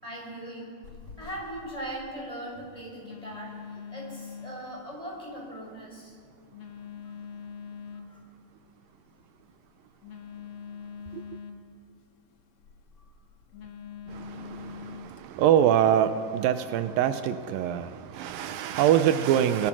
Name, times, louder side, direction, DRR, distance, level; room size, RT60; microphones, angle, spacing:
voice 1, 0.0-0.8 1.0-3.5 3.9-6.2 7.9-8.2, right 1 dB, 10° left, -2 dB, 5.7 m, -39 dB
Telephone, 0.8-15.2, left 6 dB, 45° left, 2.3 m, -45 dB
voice 2, 14.1-19.7, right 10 dB, 80° right, 10 dB, 2.4 m, -24 dB
29.5 x 21.0 x 6.1 m, 2.1 s
omnidirectional pair, 4.1 m